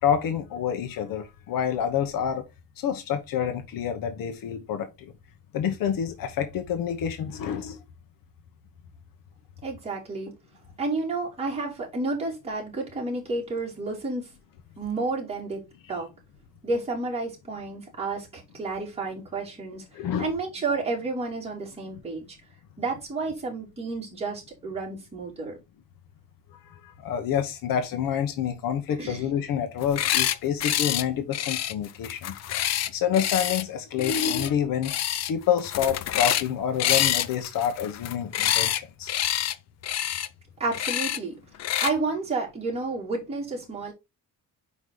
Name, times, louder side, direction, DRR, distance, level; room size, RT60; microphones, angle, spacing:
voice 1, 0.0-2.5 2.8-5.1 5.5-7.8 19.9-20.3 26.5-32.4 32.9-34.9 35.3-39.1, left 8 dB, 75° left, 1.0 m, -28 dB
voice 2, 9.6-10.3 10.8-14.3 14.8-15.6 15.9-16.1 16.6-19.8 20.2-22.3 22.8-25.6 28.9-29.2 40.6-41.3 41.8-43.9, right 3 dB, 15° right, 3.0 m, -31 dB
sound 1, 29.8-30.4 30.6-31.0 31.3-33.6 34.0-34.5 34.8-35.3 35.6-36.5 36.8-38.8 39.1-39.5 39.8-40.3 40.7-41.2 41.6-41.9, left 12 dB, 50° left, 0.5 m, -26 dB
5.3 x 4.8 x 3.9 m
cardioid pair, 165°, 34 cm